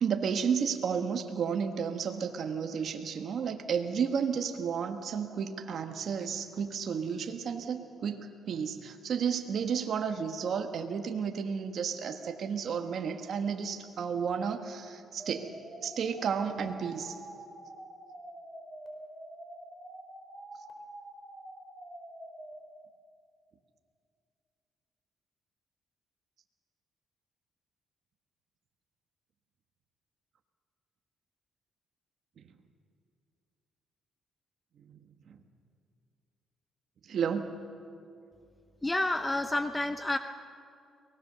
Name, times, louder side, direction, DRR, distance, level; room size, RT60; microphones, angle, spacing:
voice 1, 0.0-15.5 15.8-17.2 32.4-32.5 34.8-35.0 35.3-35.4 37.0-37.5, right 6 dB, 60° right, 6 dB, 1.4 m, -32 dB
sound 1, 15.2-22.5, right 1 dB, 5° right, 4.5 m, -47 dB
voice 2, 38.8-40.2, left 2 dB, 15° left, 9 dB, 0.7 m, -29 dB
23.5 x 18.5 x 6.8 m, 2.4 s
cardioid pair, 90°, 0 cm